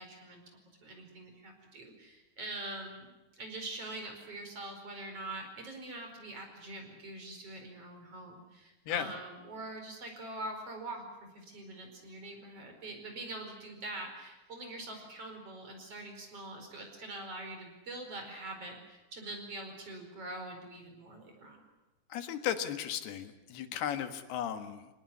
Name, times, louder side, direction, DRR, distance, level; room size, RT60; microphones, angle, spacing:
voice 1, 0.0-21.6, right 2 dB, 40° right, 3 dB, 5.7 m, -44 dB
voice 2, 22.1-24.9, left 10 dB, 85° left, 9 dB, 3.6 m, -35 dB
27.0 x 19.0 x 9.8 m, 1.1 s
omnidirectional pair, 4.5 m